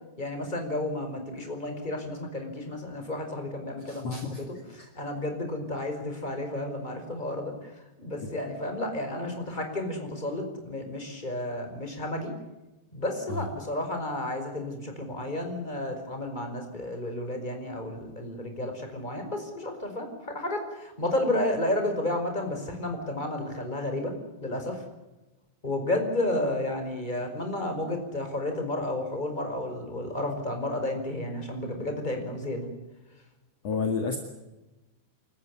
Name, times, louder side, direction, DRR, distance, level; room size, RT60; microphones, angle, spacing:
voice 1, 0.2-7.7 8.0-12.3 12.9-24.1 24.4-24.8 25.6-32.7, left 1 dB, 10° left, 5 dB, 4.7 m, -32 dB
voice 2, 3.8-4.4 4.8-4.9 13.3-13.5 33.6-34.2, left 4 dB, 45° left, 4 dB, 2.2 m, -30 dB
28.5 x 14.5 x 9.8 m, 1.0 s
omnidirectional pair, 5.8 m